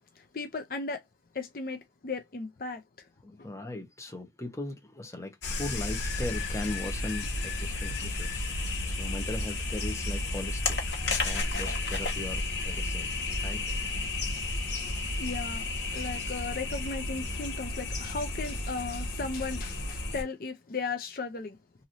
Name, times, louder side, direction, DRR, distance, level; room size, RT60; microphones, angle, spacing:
voice 1, 0.2-1.0 1.3-2.8 3.3-3.5 15.2-21.6, left 4 dB, 55° left, 0.5 m, -36 dB
voice 2, 3.2-13.6, left 2 dB, 15° left, 0.8 m, -39 dB
sound 1, 5.4-20.2, left 2 dB, 90° left, 1.2 m, -32 dB
3.0 x 2.7 x 2.6 m
head